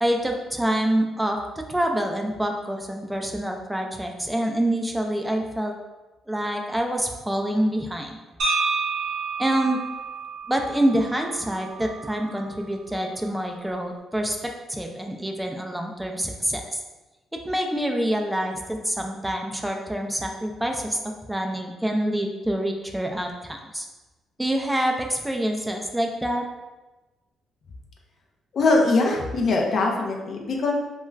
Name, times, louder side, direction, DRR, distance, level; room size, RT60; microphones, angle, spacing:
voice 1, 0.0-5.7 6.3-8.2 9.4-9.8 10.5-16.8 17.4-23.9 24.4-26.4, right 1 dB, 5° right, 2 dB, 0.4 m, -26 dB
sound 1, 8.4-12.5, right 4 dB, 75° right, 0.6 m, -30 dB
voice 2, 28.5-30.7, left 3 dB, 55° left, 0 dB, 0.5 m, -22 dB
2.3 x 2.3 x 3.1 m, 1.1 s
cardioid pair, 90°, 0 cm